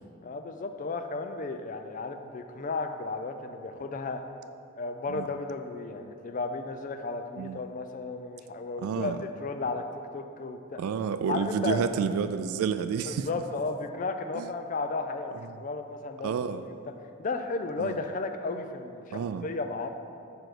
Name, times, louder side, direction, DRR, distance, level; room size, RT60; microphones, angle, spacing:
voice 1, 0.2-4.2 4.7-9.9 10.1-10.8 11.3-11.8 13.1-19.9, left 3 dB, 35° left, 7 dB, 0.3 m, -34 dB
voice 2, 8.8-9.2 10.8-13.3 14.3-14.5 16.2-16.6 17.8-18.0 19.1-19.5, right 6 dB, 85° right, 14 dB, 0.3 m, -30 dB
5.0 x 4.8 x 6.0 m, 2.6 s
head